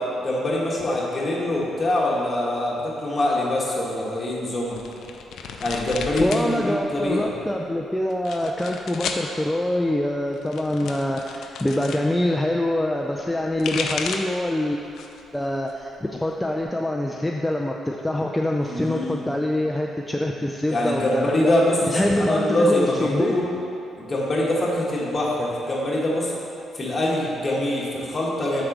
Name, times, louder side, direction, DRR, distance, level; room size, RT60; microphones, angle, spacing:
voice 1, 0.2-4.8 5.6-7.3 18.6-19.2 20.7-23.5 24.0-26.3 26.7-28.6, left 1 dB, 30° left, -4 dB, 1.5 m, -24 dB
sound 1, 4.7-6.5 6.8-7.4 8.1-9.3 10.3-12.0 13.3-14.4 14.8-15.3 15.7-16.6, left 5 dB, 75° left, 0.4 m, -33 dB
voice 2, 6.2-14.8 15.3-21.5 21.9-23.3, left 1 dB, 10° left, 0 dB, 0.4 m, -25 dB
5.0 x 4.3 x 6.0 m, 2.8 s
cardioid pair, 90°, 0 cm